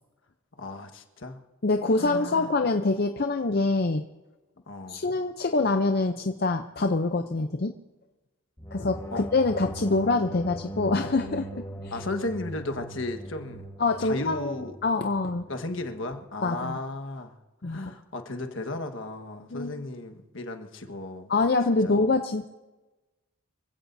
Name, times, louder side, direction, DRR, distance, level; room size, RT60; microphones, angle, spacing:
voice 1, 0.6-1.4 2.0-2.5 4.7-5.1 9.1-9.3 11.9-13.6 14.0-14.8 15.5-17.3 17.6-21.3 21.8-22.0, left 2 dB, 65° left, 6 dB, 1.5 m, -35 dB
voice 2, 1.6-4.0 4.9-7.7 8.7-12.0 13.8-15.5 16.4-16.8 17.6-17.8 19.5-19.8 21.3-22.5, left 3 dB, 45° left, 6 dB, 0.6 m, -25 dB
sound 1, 8.6-15.8, right 1 dB, 15° left, 1.4 m, -40 dB
26.0 x 16.0 x 2.7 m, 1.1 s
head